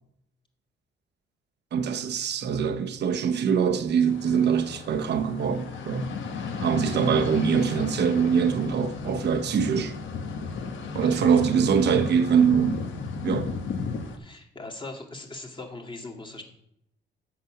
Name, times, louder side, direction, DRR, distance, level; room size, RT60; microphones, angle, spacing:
voice 1, 1.7-6.1 6.6-10.0 10.9-12.9 13.2-13.6, right 7 dB, 60° right, 0.9 m, -23 dB
sound 1, 4.1-14.2, left 4 dB, 75° left, 1.3 m, -34 dB
voice 2, 11.0-11.4 14.2-16.4, left 2 dB, 25° left, 2.0 m, -40 dB
8.1 x 6.1 x 6.0 m
cardioid pair, 90°, 20 cm